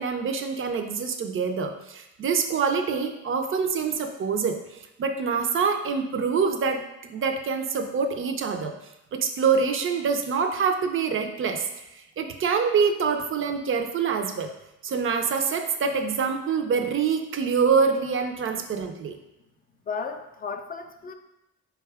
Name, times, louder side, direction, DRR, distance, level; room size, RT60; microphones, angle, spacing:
voice 1, 0.0-8.7 9.1-11.7 11.9-14.5 14.8-19.2, right 5 dB, 45° right, 6 dB, 0.5 m, -25 dB
voice 2, 19.9-21.1, left 5 dB, 30° left, 5 dB, 0.3 m, -34 dB
4.1 x 2.3 x 3.4 m, 0.90 s
cardioid pair, 90°, 30 cm